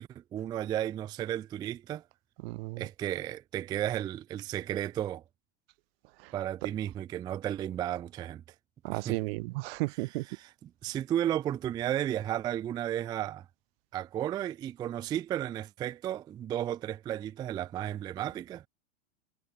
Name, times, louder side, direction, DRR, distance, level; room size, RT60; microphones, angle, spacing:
voice 1, 0.0-2.0 2.8-5.2 6.3-8.4 8.9-9.2 9.9-13.5 13.9-18.6, right 11 dB, 15° right, 0.3 m, -34 dB
voice 2, 2.4-2.9 8.8-10.2, right 24 dB, 55° right, 0.6 m, -33 dB
supercardioid pair, 135°, 36 cm